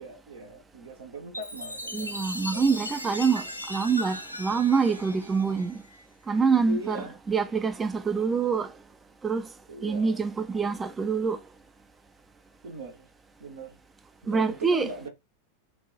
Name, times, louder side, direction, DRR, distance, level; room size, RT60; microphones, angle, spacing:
voice 1, 0.0-2.8 6.6-7.2 9.7-10.2 12.6-13.1 13.4-13.8 14.2-15.1, right 2 dB, 65° right, 0.7 m, -40 dB
Chime, 1.3-6.0, left 1 dB, 90° left, 0.4 m, -38 dB
voice 2, 1.9-5.8 6.3-8.7 9.2-9.5 9.8-11.4 14.3-14.9, right 5 dB, 15° right, 0.4 m, -26 dB
2.2 x 2.0 x 3.8 m
figure-of-eight pair, 90°, 0 cm